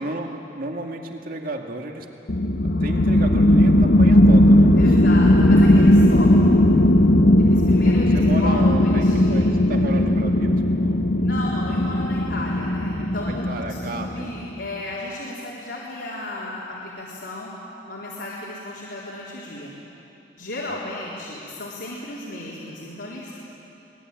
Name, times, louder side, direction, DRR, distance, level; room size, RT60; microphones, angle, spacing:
voice 1, 0.0-2.1 2.6-5.0 7.8-11.0 13.3-14.3 20.7-20.8, right 1 dB, 55° right, 3 dB, 2.1 m, -33 dB
sound 1, 2.3-14.4, left 1 dB, 60° left, 1.1 m, -17 dB
voice 2, 4.8-6.6 7.4-9.6 11.2-13.4 13.7-17.5 17.9-19.8 20.4-23.3, left 2 dB, 80° left, -6 dB, 3.8 m, -34 dB
24.5 x 19.5 x 9.1 m, 2.8 s
head